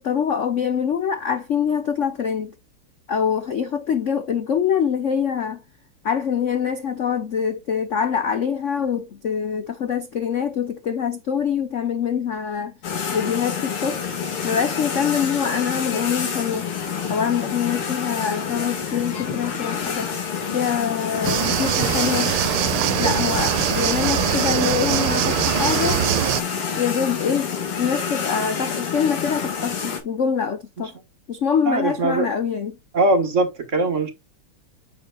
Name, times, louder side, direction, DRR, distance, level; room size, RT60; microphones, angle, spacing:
voice 1, 0.0-2.5 3.1-5.6 6.0-12.7 13.1-14.0 14.4-16.7 17.1-20.1 20.5-22.3 23.0-26.0 26.8-30.9 31.3-32.8, left 7 dB, 60° left, 0.8 m, -24 dB
sound 1, 12.8-30.0, left 6 dB, 80° left, 2.9 m, -28 dB
sound 2, 21.2-26.4, right 13 dB, 80° right, 1.5 m, -22 dB
voice 2, 31.6-32.3 32.9-34.1, right 2 dB, 40° right, 1.6 m, -21 dB
9.2 x 6.4 x 2.4 m
omnidirectional pair, 2.4 m